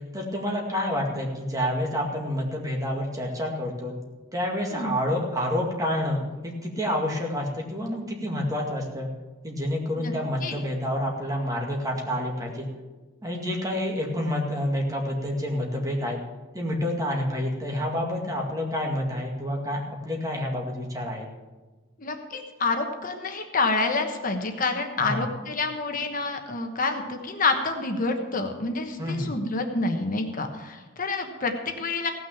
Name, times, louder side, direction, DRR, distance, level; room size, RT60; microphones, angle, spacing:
voice 1, 0.1-3.9 4.3-9.1 9.4-12.7 13.2-16.2 16.5-21.3 25.0-25.2 29.0-29.3, left 1 dB, 15° right, 0 dB, 2.1 m, -28 dB
voice 2, 22.0-32.1, left 3 dB, 40° left, 5 dB, 1.2 m, -28 dB
16.5 x 6.2 x 7.1 m, 1.2 s
head